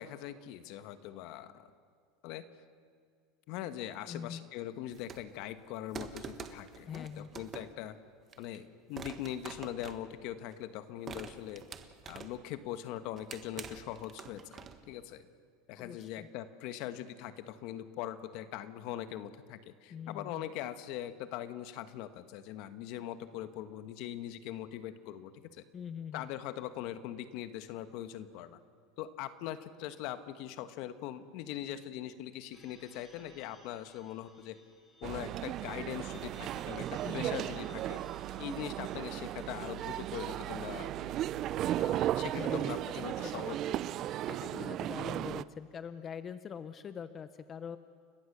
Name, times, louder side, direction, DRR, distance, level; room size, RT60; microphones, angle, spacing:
voice 1, 0.0-1.7 2.2-2.5 3.5-8.0 8.4-11.6 12.1-15.3 15.7-25.6 26.1-28.6 29.0-34.6 35.0-38.0 38.4-41.2 41.8-43.6 43.8-43.9, left 12 dB, 65° left, 11 dB, 1.3 m, -41 dB
voice 2, 4.1-4.4 6.9-7.3 15.8-16.3 19.9-20.4 25.7-26.3 37.0-37.3 42.3-42.9 43.2-43.4 44.3-47.8, left 7 dB, 35° left, 12 dB, 0.8 m, -43 dB
sound 1, 4.9-5.4 5.9-7.8 8.3-8.6 9.0-10.6 11.1-12.5 13.0-14.9, right 6 dB, 30° right, 1.5 m, -46 dB
sound 2, 32.5-45.1, left 1 dB, 15° left, 5.9 m, -62 dB
sound 3, 35.0-45.4, right 12 dB, 45° right, 0.5 m, -35 dB
30.0 x 15.0 x 6.8 m, 2.1 s
supercardioid pair, 105°, 0 cm